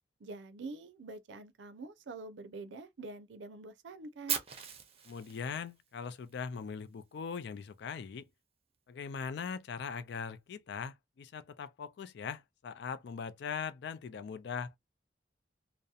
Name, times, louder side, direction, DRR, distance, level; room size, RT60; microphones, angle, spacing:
voice 1, 0.2-4.4, right 3 dB, 90° right, 0.5 m, -46 dB
Fire, 4.3-6.3, right 7 dB, 35° right, 0.5 m, -38 dB
voice 2, 5.1-8.2 8.9-14.8, left 6 dB, 65° left, 0.4 m, -40 dB
2.7 x 2.0 x 2.3 m
head